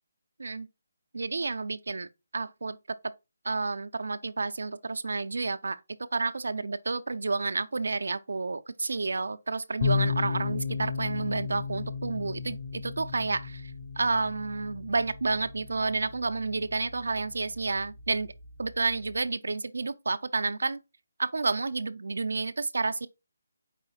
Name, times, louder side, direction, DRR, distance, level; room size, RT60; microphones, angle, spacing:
voice 1, 1.1-2.1 2.3-2.8 3.4-18.3 18.6-20.8 21.2-23.1, right 3 dB, 80° right, 0.4 m, -30 dB
sound 1, 9.8-19.2, left 5 dB, 25° left, 0.6 m, -35 dB
4.8 x 3.1 x 2.8 m
hypercardioid pair, 175°, 0 cm